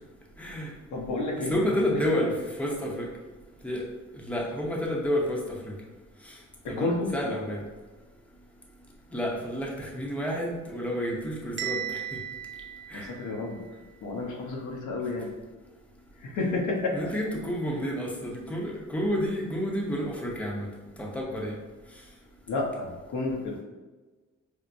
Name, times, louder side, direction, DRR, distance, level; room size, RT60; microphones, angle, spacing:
voice 1, 0.4-0.7 1.4-2.3 2.6-3.1 3.6-3.8 4.1-5.7 6.3-6.4 6.7-7.6 9.1-12.0 12.9-13.1 16.9-20.7 21.0-21.6, equal, 5° left, -2 dB, 0.6 m, -30 dB
voice 2, 0.9-1.6 1.9-2.2 6.6-7.1 12.9-13.6 14.0-15.3 16.2-17.0 22.5-23.6, left 2 dB, 75° left, -1 dB, 0.8 m, -30 dB
Bell, 11.6-13.6, right 10 dB, 40° right, 0.4 m, -36 dB
4.6 x 2.1 x 2.6 m, 1.3 s
cardioid pair, 90°, 30 cm